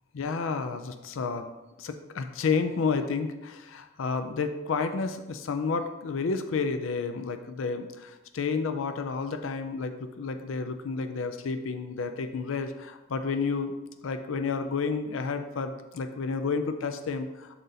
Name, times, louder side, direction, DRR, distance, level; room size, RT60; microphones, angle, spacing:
voice 1, 0.1-1.5 1.8-13.7 14.0-17.5, left 4 dB, 80° left, 8 dB, 0.5 m, -31 dB
7.7 x 4.0 x 3.9 m, 1.1 s
head